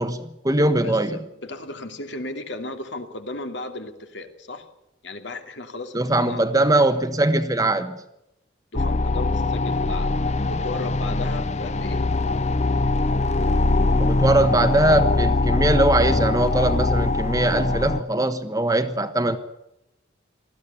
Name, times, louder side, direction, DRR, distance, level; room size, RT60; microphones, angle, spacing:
voice 1, 0.0-1.2 5.9-8.0 14.0-19.4, right 1 dB, 20° right, 10 dB, 1.2 m, -21 dB
voice 2, 0.8-4.7 5.0-6.6 8.7-12.0, left 2 dB, 65° left, 6 dB, 2.6 m, -35 dB
sound 1, 8.7-18.0, left 2 dB, 35° left, 0.7 m, -22 dB
19.5 x 14.5 x 9.8 m, 0.84 s
head